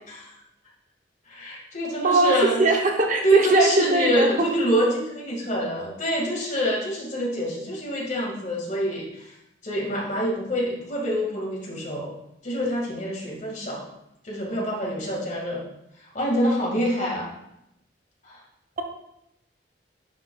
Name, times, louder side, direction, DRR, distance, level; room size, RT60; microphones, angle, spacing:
voice 1, 1.3-2.6 3.2-9.3 9.6-12.1 12.4-13.9 14.2-15.6 16.1-17.3 18.2-18.4, equal, 45° left, -3 dB, 2.0 m, -26 dB
voice 2, 2.0-4.5, right 3 dB, 45° right, 2 dB, 0.8 m, -20 dB
10.5 x 4.9 x 2.4 m, 0.82 s
head